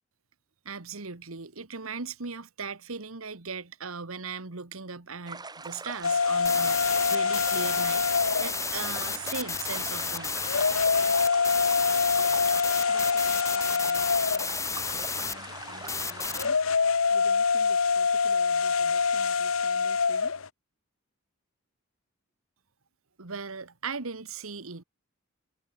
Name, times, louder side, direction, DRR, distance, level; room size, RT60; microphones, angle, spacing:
voice 1, 0.6-10.4 23.2-24.8, right 4 dB, 90° right, 1.7 m, -38 dB
sound 1, 5.3-16.5, right 3 dB, 20° right, 4.5 m, -42 dB
sound 2, 6.0-20.5, left 5 dB, 75° left, 1.0 m, -26 dB
sound 3, 6.4-15.3 15.9-16.4, left 5 dB, 15° left, 1.8 m, -32 dB
voice 2, 12.9-16.6 17.1-20.4, left 1 dB, 30° left, 5.9 m, -52 dB
head